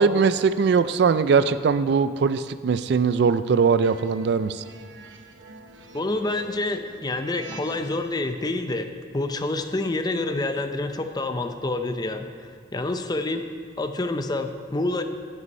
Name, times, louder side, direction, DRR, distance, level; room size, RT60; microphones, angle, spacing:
voice 1, 0.0-4.6, right 5 dB, 60° right, 13 dB, 0.3 m, -21 dB
sound 1, 3.8-8.3, right 2 dB, 75° right, 0.9 m, -45 dB
voice 2, 5.9-8.9 9.1-13.5 13.8-15.0, left 2 dB, 20° left, 7 dB, 0.5 m, -27 dB
9.6 x 8.1 x 5.3 m, 2.1 s
head